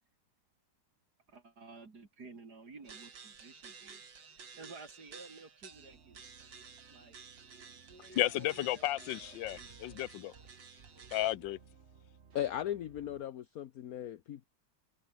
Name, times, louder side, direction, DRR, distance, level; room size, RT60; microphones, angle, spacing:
voice 1, 1.3-6.5 6.9-7.2 7.9-9.8, right 4 dB, 60° right, 3.6 m, -53 dB
sound 1, 2.8-11.4, right 5 dB, 85° right, 3.3 m, -53 dB
sound 2, 5.7-13.2, right 6 dB, 40° right, 1.5 m, -60 dB
voice 2, 8.2-10.3 11.1-11.6, left 15 dB, 90° left, 1.4 m, -33 dB
voice 3, 12.3-14.4, left 11 dB, 60° left, 1.2 m, -37 dB
omnidirectional pair, 2.0 m